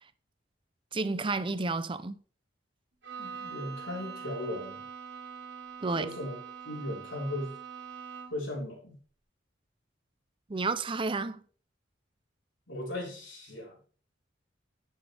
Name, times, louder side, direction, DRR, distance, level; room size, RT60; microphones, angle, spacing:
voice 1, 0.9-2.2 5.8-6.1 10.5-11.4, right 3 dB, 25° right, 0.6 m, -31 dB
Bowed string instrument, 3.0-8.5, right 6 dB, 65° right, 2.1 m, -44 dB
voice 2, 3.2-4.8 6.0-6.4 6.6-7.5 8.3-9.0 12.7-13.8, left 1 dB, 85° left, 4.4 m, -37 dB
10.5 x 7.5 x 3.5 m
head